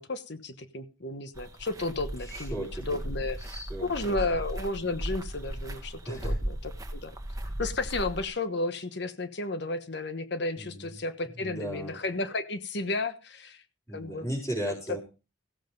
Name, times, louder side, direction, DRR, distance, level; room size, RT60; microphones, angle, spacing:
voice 1, 0.0-3.4 3.8-7.2 7.6-13.6 13.9-14.3, left 2 dB, 55° left, 10 dB, 1.2 m, -33 dB
sound 1, 1.3-8.3, right 1 dB, 15° right, 1.4 m, -36 dB
voice 2, 2.2-2.8 3.5-4.2 6.1-6.4 10.6-11.0 11.4-12.0 13.9-15.0, right 1 dB, 15° left, -7 dB, 5.4 m, -36 dB
15.5 x 7.5 x 5.3 m, 0.32 s
head